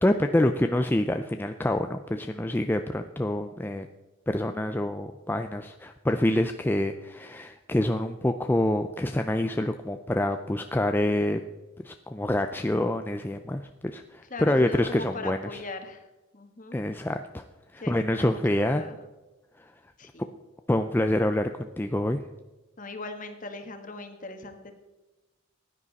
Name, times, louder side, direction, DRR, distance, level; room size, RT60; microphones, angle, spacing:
voice 1, 0.0-3.9 4.3-11.4 11.8-15.6 16.7-17.4 17.7-18.8 20.7-22.2, left 1 dB, 10° left, 6 dB, 0.4 m, -26 dB
voice 2, 14.3-16.0 16.3-16.8 17.8-19.0 20.0-20.3 22.8-24.7, left 2 dB, 40° left, 6 dB, 1.4 m, -39 dB
15.5 x 10.0 x 4.1 m, 1.1 s
head